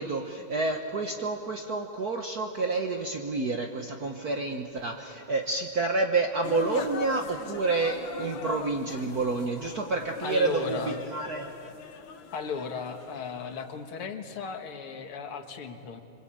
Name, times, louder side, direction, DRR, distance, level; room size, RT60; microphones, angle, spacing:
voice 1, 0.0-11.6, right 3 dB, 50° right, 4 dB, 1.5 m, -29 dB
sound 1, 6.4-13.9, left 6 dB, 60° left, 1.8 m, -41 dB
voice 2, 10.2-11.0 12.3-16.0, left 5 dB, 80° left, 6 dB, 2.5 m, -36 dB
27.0 x 25.0 x 8.8 m, 2.7 s
omnidirectional pair, 2.4 m